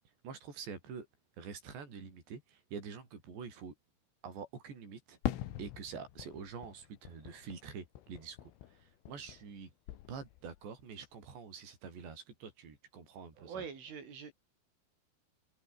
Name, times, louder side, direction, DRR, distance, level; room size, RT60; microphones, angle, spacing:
voice 1, 0.2-1.1 1.4-3.7 4.2-5.2 5.6-8.4 8.7-9.7 10.1-13.6, right 6 dB, 65° right, 8.3 m, -46 dB
Fireworks, 5.2-9.6 9.9-10.7, left 13 dB, 90° left, 4.3 m, -43 dB
voice 2, 13.4-14.3, right 6 dB, 80° right, 8.2 m, -44 dB
omnidirectional pair, 5.5 m